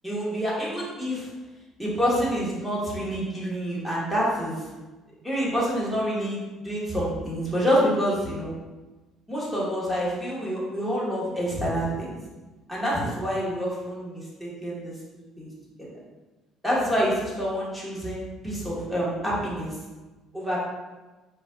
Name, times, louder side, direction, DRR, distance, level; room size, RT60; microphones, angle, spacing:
voice 1, 0.0-1.3 1.8-4.6 5.2-8.5 9.3-12.1 12.7-14.9 15.4-15.5 15.8-15.9 16.6-19.8 20.3-20.6, equal, ahead, -7 dB, 1.4 m, -27 dB
5.1 x 4.2 x 2.3 m, 1.2 s
cardioid pair, 125°, 0 cm